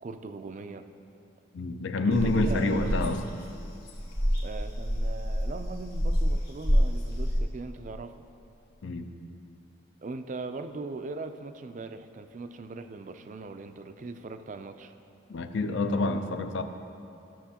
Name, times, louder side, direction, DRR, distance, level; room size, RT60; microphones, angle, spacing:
voice 1, 0.0-0.9 2.0-3.0 4.4-8.2 10.0-14.9, right 3 dB, 40° right, 8 dB, 0.3 m, -39 dB
voice 2, 1.5-3.2 8.8-9.1 15.3-16.6, left 2 dB, 65° left, 8 dB, 0.5 m, -27 dB
sound 1, 2.1-7.4, equal, 45° left, 1.6 m, -28 dB
13.5 x 7.0 x 2.9 m, 2.7 s
head